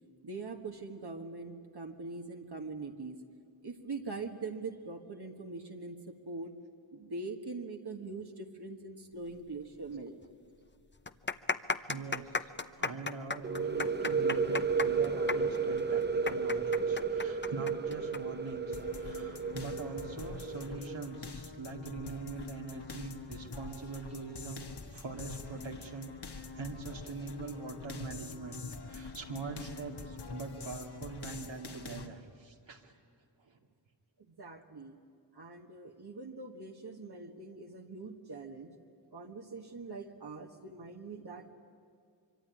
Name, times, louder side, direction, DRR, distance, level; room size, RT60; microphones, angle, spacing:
voice 1, 0.2-3.2 3.6-6.0 6.2-6.5 6.9-10.1 34.3-34.9 35.3-38.7 39.1-41.5, right 3 dB, 60° right, 2 dB, 1.6 m, -42 dB
sound 1, 9.9-10.0 10.2-10.3 10.9-18.2 18.5-18.6 19.3-19.6, left 4 dB, 25° left, 0.8 m, -35 dB
voice 2, 11.9-12.5 12.8-24.6 24.9-28.6 28.8-32.9 33.4-33.6, right 4 dB, 80° right, 1 dB, 2.5 m, -43 dB
sound 2, 13.4-21.0, right 5 dB, 25° right, 0.9 m, -33 dB
sound 3, 18.7-32.1, left 4 dB, 60° left, 1.8 m, -45 dB
25.0 x 24.0 x 9.9 m, 2.4 s
wide cardioid pair, 105°, 44 cm